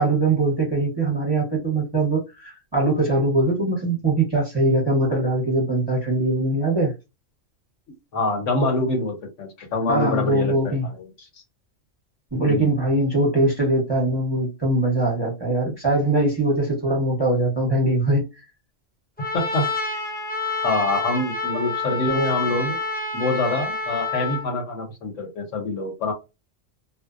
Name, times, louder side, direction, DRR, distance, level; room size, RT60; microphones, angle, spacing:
voice 1, 0.0-6.9 9.9-10.9 12.3-18.2, right 2 dB, 25° right, 0.8 m, -22 dB
voice 2, 8.1-11.3 12.5-12.8 19.3-20.0 20.6-22.8 23.1-26.1, left 2 dB, 70° left, 1.1 m, -25 dB
Trumpet, 19.2-24.5, left 3 dB, 10° left, 0.4 m, -28 dB
2.6 x 2.0 x 2.4 m
omnidirectional pair, 1.3 m